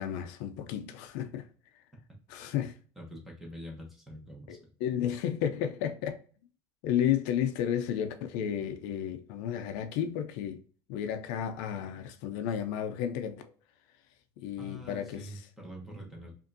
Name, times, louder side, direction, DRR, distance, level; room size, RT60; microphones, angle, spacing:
voice 1, 0.0-1.5 2.3-2.8 4.5-6.2 6.8-10.6 10.9-13.4 14.4-15.3, left 9 dB, 80° left, 0.5 m, -32 dB
voice 2, 3.0-4.6 14.6-16.3, equal, ahead, 1.0 m, -45 dB
5.1 x 2.6 x 2.6 m
cardioid pair, 160°, 10 cm